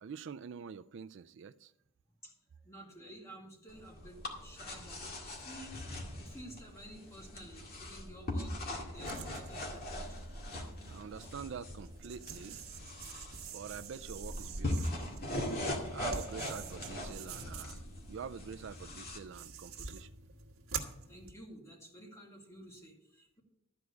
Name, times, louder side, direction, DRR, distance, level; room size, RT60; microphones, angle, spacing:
voice 1, 0.0-1.7 10.9-12.6 13.5-15.0 15.9-20.1, right 6 dB, 60° right, 0.4 m, -46 dB
voice 2, 2.6-5.8 6.2-10.2 11.0-11.4 20.8-23.4, right 1 dB, 15° left, 2.1 m, -52 dB
sound 1, 3.7-19.2, left 1 dB, 45° left, 2.0 m, -41 dB
sound 2, 9.0-21.3, right 6 dB, 80° right, 1.4 m, -47 dB
13.0 x 4.8 x 8.1 m
head